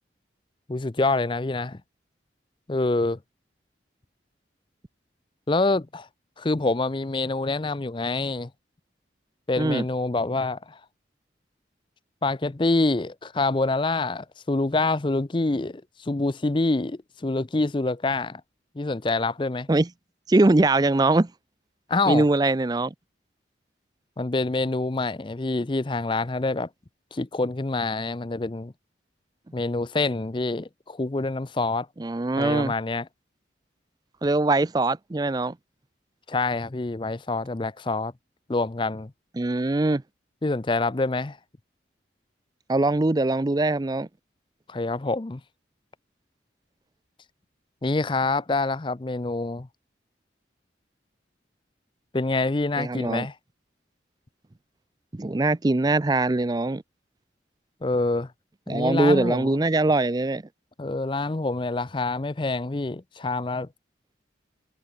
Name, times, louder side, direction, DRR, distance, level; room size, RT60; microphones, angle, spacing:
voice 1, 0.7-1.8 2.7-3.2 5.5-6.1 6.4-8.5 9.5-10.8 12.2-18.4 18.8-19.7 21.9-22.2 24.2-26.7 27.1-28.7 29.5-31.9 32.4-33.0 36.3-38.1 38.5-39.1 40.4-41.4 44.7-45.4 47.8-49.7 52.1-53.3 57.8-58.3 58.7-59.6 60.8-63.7, left 2 dB, 25° left, 0.5 m, -26 dB
voice 2, 20.3-21.3 22.1-22.9 32.0-32.7 34.2-35.6 39.4-40.0 42.7-44.1 52.8-53.3 55.1-56.8 58.7-60.4, right 2 dB, 20° right, 0.4 m, -22 dB
head